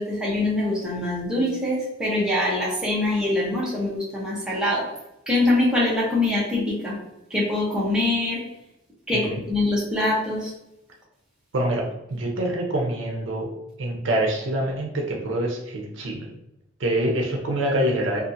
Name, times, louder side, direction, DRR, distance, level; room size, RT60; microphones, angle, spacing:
voice 1, 0.0-4.8 5.3-7.0 7.3-8.4 9.1-10.5, left 2 dB, 5° right, -6 dB, 0.7 m, -24 dB
voice 2, 11.5-13.5 13.8-16.3 16.8-18.2, right 1 dB, 65° right, -1 dB, 0.6 m, -25 dB
2.6 x 2.4 x 2.6 m, 0.86 s
head